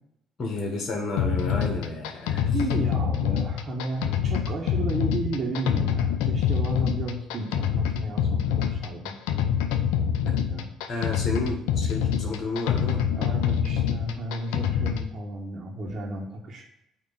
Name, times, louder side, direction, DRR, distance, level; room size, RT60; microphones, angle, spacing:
voice 1, 0.4-2.5 10.9-13.0, left 2 dB, 45° left, 1 dB, 1.5 m, -31 dB
sound 1, 1.2-15.1, left 8 dB, 80° left, 0.5 m, -26 dB
voice 2, 2.5-9.1 10.3-10.7 13.2-16.6, right 2 dB, 50° right, -4 dB, 1.4 m, -33 dB
8.7 x 2.9 x 5.7 m, 0.85 s
hypercardioid pair, 55°, 0 cm